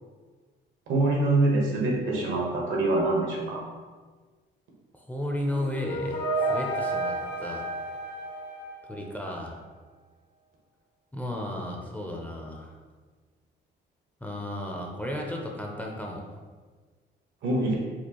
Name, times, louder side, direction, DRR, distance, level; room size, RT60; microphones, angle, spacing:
voice 1, 0.9-3.6 17.4-17.7, right 2 dB, 75° right, -2 dB, 1.0 m, -24 dB
voice 2, 4.9-7.7 8.9-9.6 11.1-12.7 14.2-16.2, left 1 dB, 10° left, 0 dB, 0.5 m, -34 dB
sound 1, 5.4-9.3, right 2 dB, 60° left, 0.8 m, -31 dB
4.3 x 2.4 x 2.9 m, 1.4 s
cardioid pair, 90°, 20 cm